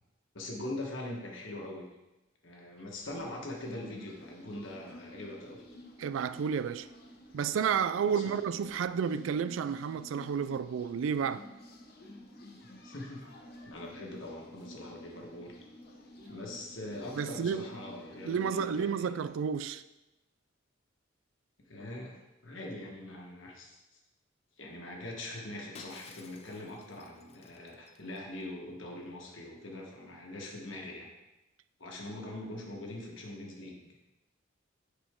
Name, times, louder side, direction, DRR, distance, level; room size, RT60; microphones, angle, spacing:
voice 1, 0.3-1.9 2.4-5.6 8.0-8.3 12.8-13.2 13.7-15.5 16.3-19.1 21.7-23.8 24.6-31.1 31.8-33.7, left 1 dB, 80° left, 1.4 m, -42 dB
sound 1, 2.9-19.6, left 2 dB, 55° left, 0.8 m, -55 dB
sound 2, 3.6-18.8, equal, 10° left, 1.4 m, -53 dB
voice 2, 6.0-6.9 7.3-11.4 17.2-17.7 18.2-19.8, right 7 dB, 90° right, 0.3 m, -31 dB
Shatter, 25.8-28.4, left 5 dB, 30° left, 0.4 m, -54 dB
8.6 x 4.4 x 3.7 m
head